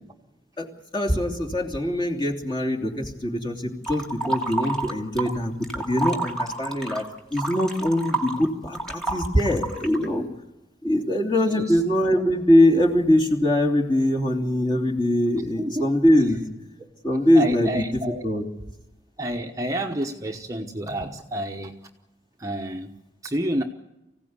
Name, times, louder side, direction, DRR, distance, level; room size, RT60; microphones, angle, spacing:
voice 1, 0.9-7.0 7.3-10.2 10.8-16.4 17.0-17.8 18.2-18.4, left 1 dB, 25° left, 1 dB, 2.9 m, -22 dB
sound 1, 3.8-5.3 5.6-10.1, right 2 dB, 5° left, 2.5 m, -29 dB
voice 2, 17.3-18.2 19.2-21.7 22.4-22.9 23.2-23.6, right 1 dB, 20° right, 3 dB, 1.1 m, -29 dB
25.0 x 16.5 x 9.5 m, 0.99 s
head